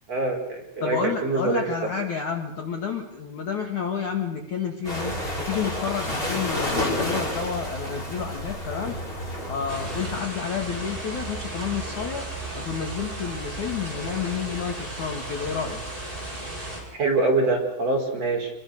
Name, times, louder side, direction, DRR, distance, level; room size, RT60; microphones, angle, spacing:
voice 1, 0.1-1.6 16.9-18.5, right 3 dB, 35° right, 0 dB, 5.6 m, -24 dB
voice 2, 0.8-9.0 9.5-12.2 12.5-15.8, left 7 dB, 50° left, 3 dB, 2.6 m, -30 dB
sound 1, 4.8-10.2, left 1 dB, 10° left, 6.1 m, -30 dB
sound 2, 9.7-16.8, right 2 dB, 10° right, 7.6 m, -34 dB
27.5 x 22.5 x 6.6 m, 0.79 s
omnidirectional pair, 5.6 m